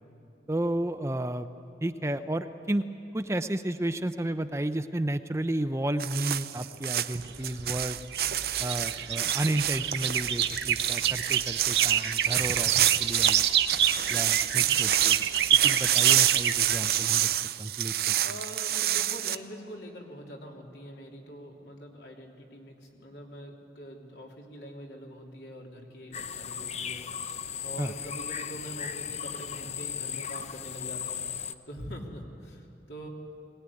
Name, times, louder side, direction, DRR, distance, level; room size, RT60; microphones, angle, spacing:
voice 1, 0.5-1.5 1.8-2.8 3.1-8.0 8.6-13.5 14.1-15.2 15.6-17.3 17.6-18.1 27.8-27.9, right 1 dB, 15° right, 9 dB, 0.6 m, -32 dB
sound 1, 6.0-19.4, right 12 dB, 60° right, 0.6 m, -28 dB
sound 2, 7.2-16.8, right 9 dB, 75° right, 1.0 m, -28 dB
voice 2, 18.2-31.3 31.7-33.1, equal, 75° left, -1 dB, 3.3 m, -44 dB
sound 3, 26.1-31.5, left 8 dB, 40° left, 0.6 m, -36 dB
21.5 x 18.5 x 9.8 m, 2.6 s
head